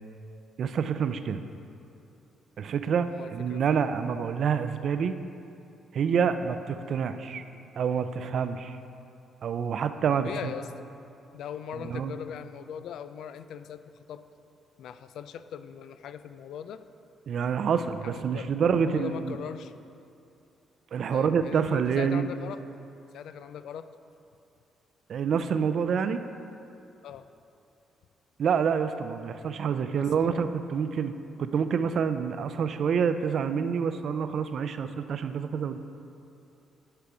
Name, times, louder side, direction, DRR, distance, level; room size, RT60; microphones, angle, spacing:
voice 1, 0.6-1.4 2.6-5.1 5.9-7.4 7.8-8.8 9.4-10.5 11.8-12.2 17.3-19.4 20.9-22.3 25.1-26.2 28.4-31.1 31.4-35.8, right 6 dB, 60° right, 10 dB, 0.4 m, -27 dB
voice 2, 3.0-3.8 10.2-10.9 11.3-13.8 14.1-14.2 14.8-16.8 18.0-18.5 18.8-19.7 21.1-22.6 23.1-23.9 27.0-27.3 29.9-30.4, left 8 dB, 75° left, 12 dB, 0.3 m, -40 dB
10.5 x 5.7 x 4.9 m, 2.7 s
cardioid pair, 90°, 0 cm